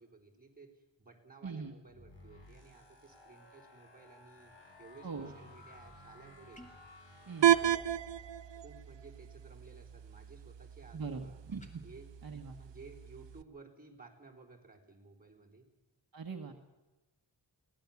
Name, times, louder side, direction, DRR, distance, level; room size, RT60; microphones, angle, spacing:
voice 1, 0.0-4.5 4.8-6.6 7.4-7.8 8.6-11.4 11.8-12.1 12.6-15.7, right 4 dB, 20° right, -1 dB, 4.1 m, -56 dB
sound 1, 1.9-8.3, left 2 dB, 75° left, 6.3 m, -56 dB
sound 2, 6.5-6.9 11.5-11.8, equal, 15° left, 2.5 m, -56 dB
sound 3, 7.4-13.4, right 11 dB, 75° right, 0.8 m, -33 dB
voice 2, 10.9-11.8 12.2-12.6 16.1-16.5, right 5 dB, 50° right, 3 dB, 1.5 m, -41 dB
23.5 x 17.5 x 7.2 m, 1.1 s
wide cardioid pair, 135°, 44 cm